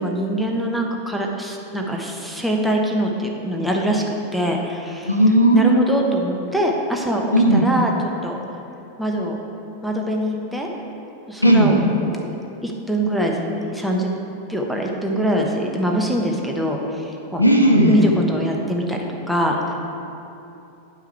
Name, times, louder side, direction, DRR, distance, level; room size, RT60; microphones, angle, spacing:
voice 1, 0.0-5.2 5.5-7.9 8.2-8.4 9.0-9.4 9.8-10.7 11.3-12.3 12.6-14.1 14.5-17.5 17.9-19.7, equal, ahead, -1 dB, 1.0 m, -23 dB
voice 2, 5.1-6.0 7.3-7.6 11.4-11.7 17.4-17.9, right 1 dB, 85° left, 0 dB, 1.0 m, -15 dB
10.0 x 5.8 x 4.5 m, 2.9 s
figure-of-eight pair, 90°, 0 cm